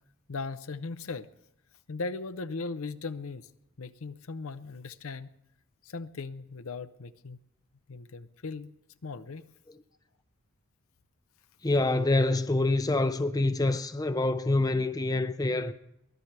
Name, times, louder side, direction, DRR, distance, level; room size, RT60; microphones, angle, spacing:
voice 1, 0.3-1.3 1.9-3.5 3.8-5.3 5.8-7.4 7.9-8.7 9.0-9.4, left 3 dB, 75° left, 0.7 m, -38 dB
voice 2, 11.6-15.7, left 2 dB, 15° left, 0.5 m, -26 dB
23.0 x 16.0 x 3.3 m
head